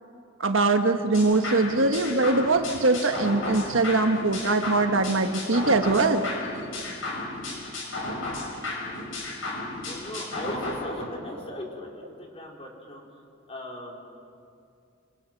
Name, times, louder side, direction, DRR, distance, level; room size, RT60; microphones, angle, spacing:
voice 1, 0.4-6.3, right 3 dB, 70° right, 6 dB, 1.5 m, -22 dB
sound 1, 1.1-10.7, left 2 dB, 75° left, 7.5 m, -34 dB
voice 2, 9.9-14.0, left 1 dB, 30° left, -1 dB, 4.5 m, -38 dB
28.5 x 27.0 x 6.0 m, 2.5 s
head